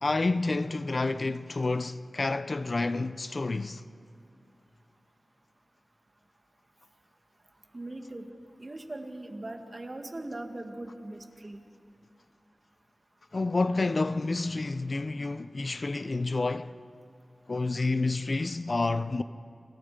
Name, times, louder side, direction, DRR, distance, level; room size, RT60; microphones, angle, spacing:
voice 1, 0.0-3.8 13.3-16.7 17.5-19.2, left 3 dB, 50° left, 0.6 m, -29 dB
voice 2, 7.7-8.3 8.6-11.6 17.7-17.9, right 2 dB, 40° right, 2.3 m, -40 dB
27.5 x 27.5 x 5.2 m
wide cardioid pair, 70°, 0 cm